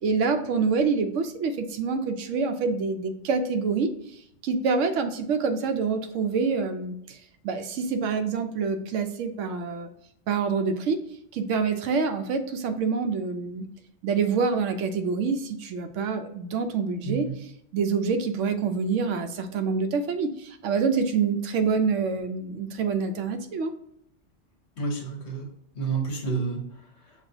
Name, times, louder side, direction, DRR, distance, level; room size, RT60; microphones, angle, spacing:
voice 1, 0.0-3.9 4.4-7.2 7.4-9.9 10.3-11.0 11.3-13.7 14.0-17.3 17.7-23.7, right 5 dB, 85° right, 7 dB, 0.9 m, -26 dB
voice 2, 17.0-17.4 24.8-25.5 25.7-27.3, right 4 dB, 65° left, 2 dB, 1.2 m, -31 dB
6.3 x 2.3 x 2.6 m, 0.74 s
omnidirectional pair, 1.3 m